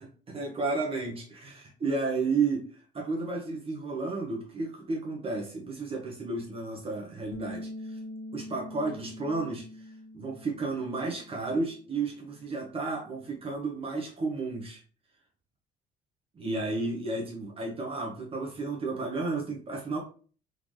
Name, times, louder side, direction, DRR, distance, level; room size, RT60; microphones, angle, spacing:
voice 1, 0.0-2.6 2.9-8.0 8.3-9.9 10.1-14.8 16.4-20.0, right 3 dB, 35° right, 0 dB, 1.4 m, -32 dB
Bass guitar, 7.3-13.6, left 1 dB, 55° left, 1.3 m, -45 dB
3.8 x 3.6 x 3.2 m, 0.40 s
cardioid pair, 110°, 17 cm